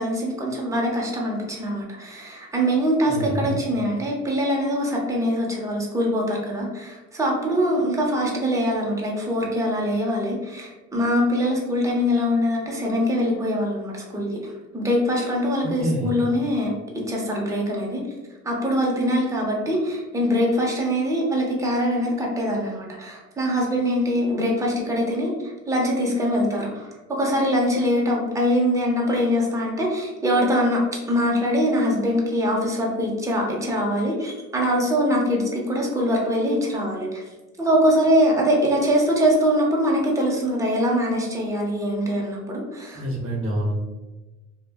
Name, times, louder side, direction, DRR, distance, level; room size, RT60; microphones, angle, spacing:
voice 1, 0.0-14.3 14.7-16.7 17.1-18.0 18.4-30.8 31.1-37.2 37.6-43.0, equal, 10° right, -2 dB, 0.7 m, -23 dB
voice 2, 3.1-3.5 15.8-16.1 42.9-43.8, right 1 dB, 45° right, -2 dB, 0.8 m, -26 dB
2.3 x 2.1 x 3.4 m, 1.2 s
cardioid pair, 90°, 30 cm